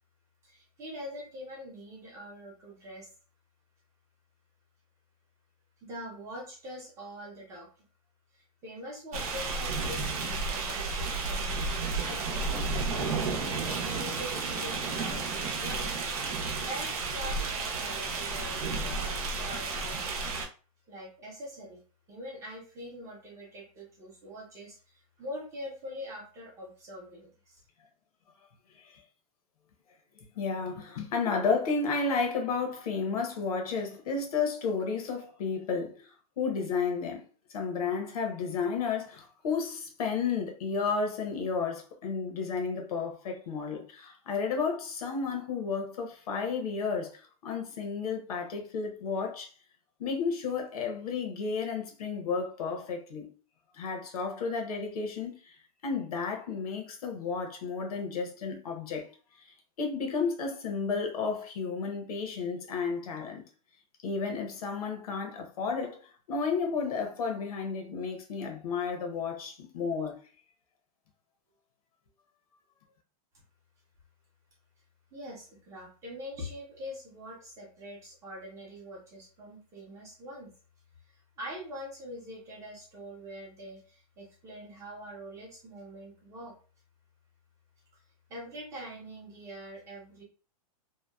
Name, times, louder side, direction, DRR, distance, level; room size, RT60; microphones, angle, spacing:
voice 1, 0.4-3.1 5.9-7.8 8.3-16.0 16.5-20.1 20.9-21.8 22.1-27.6 75.1-80.5 81.1-86.5 87.9-88.0 88.3-90.2, equal, 15° right, 0.6 m, -44 dB
sound 1, 9.1-20.5, right 3 dB, 75° right, 0.7 m, -32 dB
voice 2, 30.3-37.2 37.5-49.5 50.0-53.3 53.7-55.6 55.8-59.1 59.8-63.4 64.0-66.0 66.3-70.2, left 5 dB, 75° left, 0.8 m, -32 dB
2.8 x 2.1 x 2.2 m
supercardioid pair, 170°, 19 cm